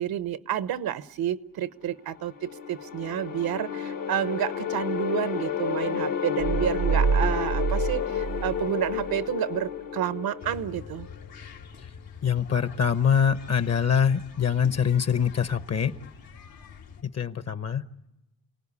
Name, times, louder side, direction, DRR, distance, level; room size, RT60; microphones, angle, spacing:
voice 1, 0.0-11.1, right 10 dB, 90° right, 13 dB, 1.0 m, -30 dB
sound 1, 2.1-11.2, left 9 dB, 70° left, 1.5 m, -31 dB
sound 2, 6.4-9.3, right 6 dB, 65° right, 0.8 m, -27 dB
sound 3, 10.4-17.0, left 6 dB, 90° left, 2.8 m, -45 dB
voice 2, 12.2-15.9 17.0-17.8, left 7 dB, 45° left, 12 dB, 1.0 m, -24 dB
29.5 x 18.5 x 9.8 m, 0.99 s
cardioid pair, 105°, 35 cm